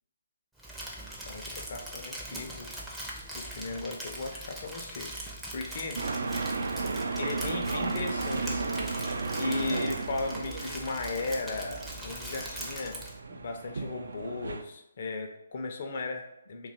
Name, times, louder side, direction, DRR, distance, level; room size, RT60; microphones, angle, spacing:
Crumpling crinkling, 0.6-13.2, right 1 dB, 5° right, 0.5 m, -41 dB
voice 1, 1.2-2.8 3.3-6.0 7.2-8.9 9.4-13.0 13.3-16.7, left 3 dB, 45° left, 3 dB, 0.5 m, -36 dB
sound 1, 6.0-14.6, right 3 dB, 60° right, 0.3 m, -34 dB
2.8 x 2.3 x 4.1 m, 0.84 s
figure-of-eight pair, 140°, 0 cm